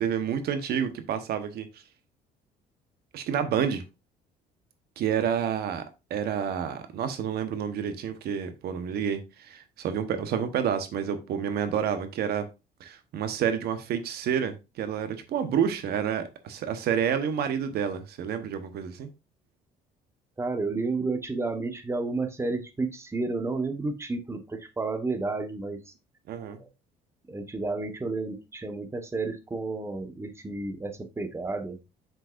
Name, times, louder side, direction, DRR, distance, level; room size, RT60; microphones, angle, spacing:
voice 1, 0.0-1.8 3.1-3.8 5.0-5.8 6.1-12.5 12.8-19.1 26.3-26.6, right 8 dB, 70° right, 1.1 m, -29 dB
voice 2, 20.4-25.8 26.6-26.7 27.3-31.8, right 3 dB, 15° right, 1.2 m, -31 dB
7.5 x 6.4 x 2.5 m
cardioid pair, 110°, 17 cm